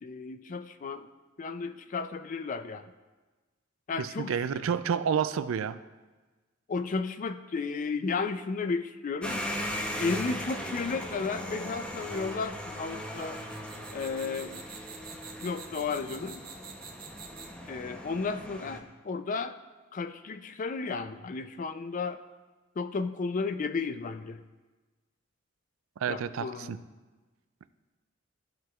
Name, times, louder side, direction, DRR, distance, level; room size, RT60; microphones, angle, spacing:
voice 1, 0.0-1.1 1.4-2.9 3.9-4.7 6.7-9.4 10.0-13.4 13.9-14.6 15.4-16.4 17.7-19.6 19.9-22.2 22.8-24.4 26.1-26.8, left 4 dB, 40° left, 11 dB, 0.4 m, -33 dB
voice 2, 4.0-5.8 26.0-26.8, right 7 dB, 75° right, 14 dB, 0.4 m, -29 dB
sound 1, 9.2-18.8, equal, 5° left, 0.7 m, -38 dB
sound 2, 13.0-17.7, right 6 dB, 45° right, 1.4 m, -46 dB
14.5 x 5.9 x 2.4 m, 1.3 s
head